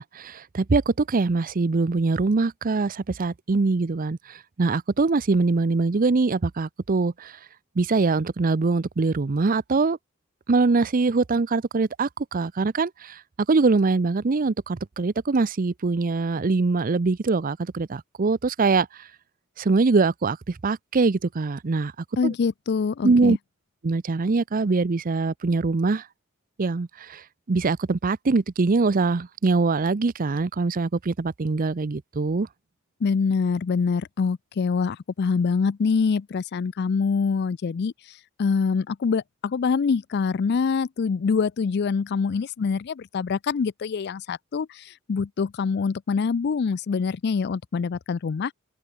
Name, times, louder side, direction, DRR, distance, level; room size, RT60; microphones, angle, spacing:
voice 1, 0.0-4.2 4.6-7.3 7.8-10.0 10.5-13.2 13.5-18.9 19.6-21.9 22.2-22.3 23.0-23.4 23.8-26.0 26.6-27.2 27.5-32.5, right 3 dB, 40° right, 0.6 m, -23 dB
voice 2, 22.2-23.4 33.0-37.9 38.4-48.5, left 5 dB, 50° left, 0.4 m, -25 dB
open air
head